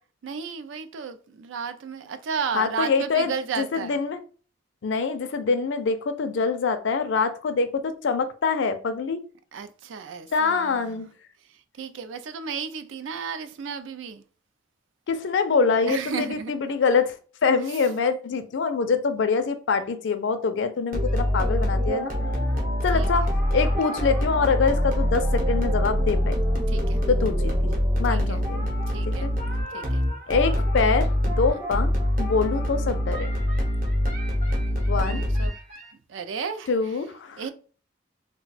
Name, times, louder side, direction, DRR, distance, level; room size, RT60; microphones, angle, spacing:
voice 1, 0.2-4.0 9.5-11.1 11.5-14.2 15.8-16.8 17.6-17.8 22.9-23.1 26.7-27.0 28.1-28.4 28.9-29.3 29.7-30.1 31.5-31.6 34.6-35.6 36.1-37.1 37.4-37.5, right 6 dB, 80° right, 0.4 m, -34 dB
voice 2, 2.5-4.2 4.8-9.2 10.3-11.1 15.1-17.1 17.4-22.1 22.8-26.3 27.1-27.5 28.0-28.7 29.2-29.3 30.3-31.9 32.2-33.3 34.9-35.2 36.7-37.4, left 5 dB, 70° left, 0.4 m, -25 dB
sound 1, 20.9-35.8, equal, 50° right, 0.9 m, -24 dB
2.3 x 2.2 x 3.9 m
head